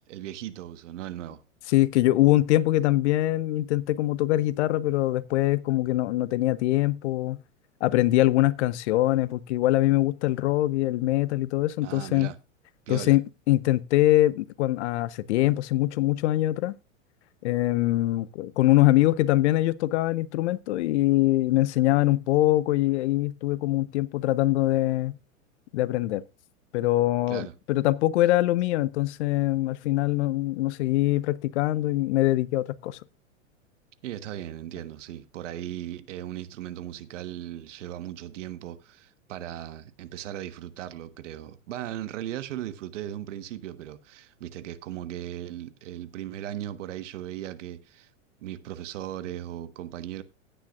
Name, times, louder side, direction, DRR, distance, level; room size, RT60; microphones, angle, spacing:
voice 1, 0.1-1.4 11.8-12.4 12.9-13.2 27.3-27.5 34.0-48.1 48.4-50.2, right 12 dB, 65° right, 1.4 m, -37 dB
voice 2, 1.7-7.4 7.8-12.3 12.9-16.7 17.4-25.2 25.7-26.2 26.7-33.0, left 16 dB, 55° left, 1.0 m, -23 dB
15.5 x 10.0 x 2.5 m
hypercardioid pair, 110°, 40 cm